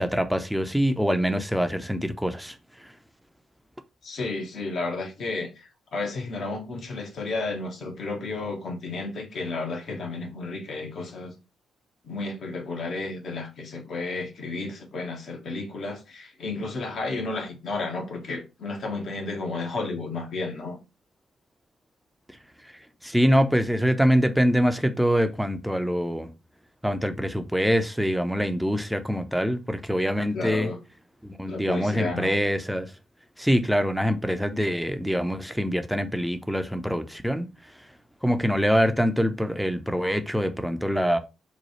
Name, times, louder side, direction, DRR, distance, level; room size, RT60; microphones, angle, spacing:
voice 1, 0.0-2.9 22.6-26.3 26.8-30.7 31.2-32.9 33.4-37.9 38.2-41.2, equal, ahead, 0.5 m, -24 dB
voice 2, 4.0-11.3 12.0-20.8 30.3-30.8 31.4-32.4, left 3 dB, 55° left, 0.9 m, -32 dB
3.0 x 2.3 x 4.1 m
hypercardioid pair, 40°, 0 cm